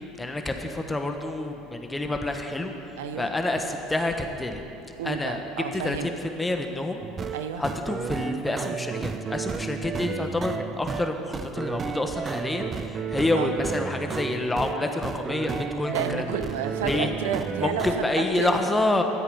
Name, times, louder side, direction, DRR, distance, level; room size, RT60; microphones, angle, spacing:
voice 1, 0.2-4.6 5.0-5.4 5.7-16.2 16.8-17.2 17.6-19.0, left 2 dB, 15° left, 4 dB, 1.2 m, -28 dB
voice 2, 3.0-3.3 5.0-6.1 7.3-7.6 13.3-13.5 15.9-18.5, right 7 dB, 85° right, 9 dB, 0.6 m, -31 dB
sound 1, 7.0-18.0, right 6 dB, 30° right, 0.5 m, -32 dB
13.0 x 8.1 x 5.5 m, 2.9 s
supercardioid pair, 95°, 0 cm